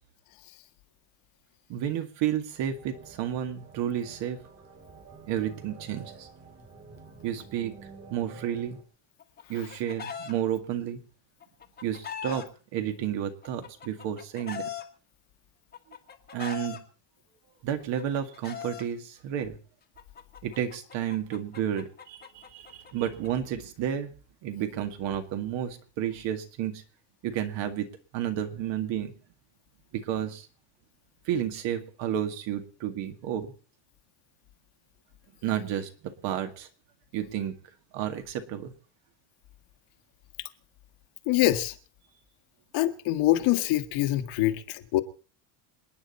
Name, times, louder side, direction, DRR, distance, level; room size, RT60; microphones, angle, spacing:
voice 1, 1.7-4.4 5.3-6.3 7.2-7.8 8.1-8.8 9.5-11.0 11.8-12.5 12.7-14.7 16.3-16.8 17.6-19.6 20.4-24.1 24.4-26.8 27.2-27.9 28.1-29.1 29.9-30.5 31.2-33.5 35.4-36.7 37.1-37.6 37.9-38.7, right 10 dB, 60° right, 2.1 m, -31 dB
sound 1, 2.7-8.8, right 4 dB, 25° right, 2.2 m, -49 dB
Chicken rooster, 9.2-10.3 11.4-12.5 13.4-14.8 15.7-16.8 17.8-18.8 20.0-23.3, left 7 dB, 20° left, 1.3 m, -40 dB
voice 2, 41.3-41.7 42.7-45.0, left 15 dB, 70° left, 1.7 m, -24 dB
27.5 x 9.8 x 4.2 m
cardioid pair, 175°, 50 cm